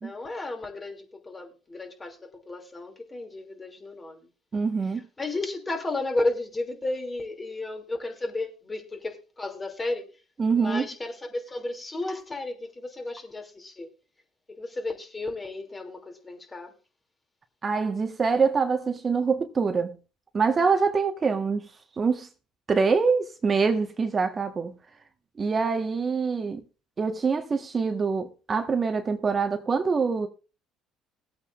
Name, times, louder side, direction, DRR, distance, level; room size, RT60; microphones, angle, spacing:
voice 1, 0.0-4.3 5.2-10.1 10.6-13.9 14.5-16.7, left 2 dB, 25° left, 2.9 m, -33 dB
voice 2, 4.5-5.0 10.4-10.9 17.6-19.9 20.3-21.7 22.0-22.3 22.7-24.7 25.4-26.6 27.0-30.3, right 5 dB, 35° right, 1.4 m, -25 dB
20.0 x 8.6 x 2.5 m
supercardioid pair, 70°, 0 cm